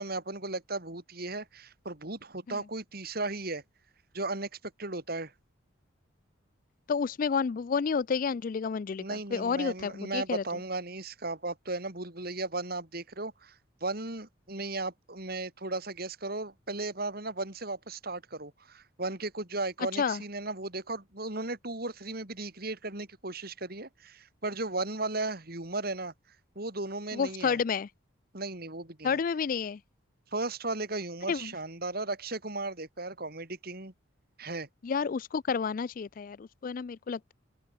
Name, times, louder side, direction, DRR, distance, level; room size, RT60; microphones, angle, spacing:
voice 1, 0.0-3.6 4.1-4.5 4.8-5.3 9.0-13.6 13.8-26.1 26.6-27.6 28.3-29.2 30.3-33.9 34.4-34.7, right 2 dB, 50° right, 3.7 m, -36 dB
voice 2, 6.9-10.4 20.0-20.2 27.1-27.9 29.0-29.8 31.3-31.5 34.8-37.3, left 5 dB, 45° left, 0.3 m, -30 dB
open air
head